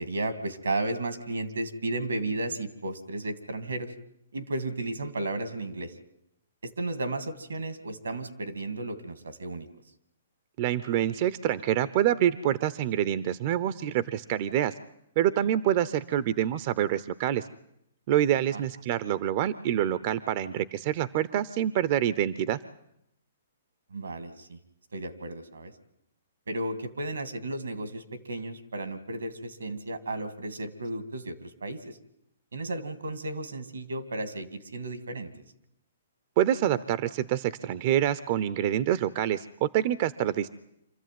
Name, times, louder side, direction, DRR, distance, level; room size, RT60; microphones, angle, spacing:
voice 1, 0.0-3.9 4.3-6.0 6.6-9.7 18.5-18.6 23.9-24.6 24.9-25.7 26.5-32.0 32.5-35.3, right 2 dB, 85° right, 11 dB, 2.4 m, -34 dB
voice 2, 10.6-14.7 15.2-17.5 18.1-22.6 36.4-40.5, right 11 dB, 45° right, 16 dB, 0.8 m, -26 dB
26.5 x 14.0 x 9.4 m, 0.79 s
hypercardioid pair, 130°, 0 cm